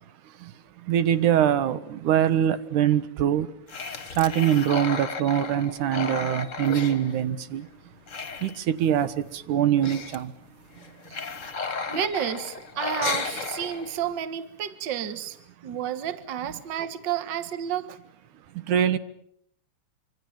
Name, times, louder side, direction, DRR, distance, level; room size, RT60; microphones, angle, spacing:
voice 1, 0.2-3.5 4.1-7.9 8.4-10.3 10.7-11.0 15.6-15.8 18.5-19.0, right 10 dB, 85° right, 2.7 m, -24 dB
sound 1, 3.7-7.7 7.9-9.1 9.3-9.4 9.6-10.3 10.7-14.1, left 5 dB, 35° left, 1.4 m, -34 dB
voice 2, 11.9-15.4 15.6-18.0, right 9 dB, 45° right, 1.8 m, -31 dB
26.5 x 25.0 x 7.4 m
omnidirectional pair, 3.4 m